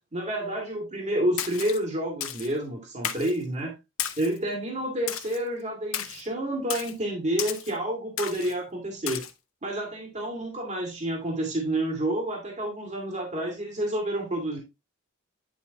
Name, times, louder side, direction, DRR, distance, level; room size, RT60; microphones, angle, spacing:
voice 1, 0.1-3.7 4.2-9.2 9.6-14.6, right 1 dB, 35° right, 2.2 m, -29 dB
Splash splatter, 1.4-1.8 2.2-2.5 3.0-3.4 4.0-4.4 5.1-5.4 5.9-6.2 6.7-6.9 7.4-7.7 8.2-8.5 9.1-9.3, left 10 dB, 75° left, 1.0 m, -33 dB
9.6 x 5.3 x 2.8 m
head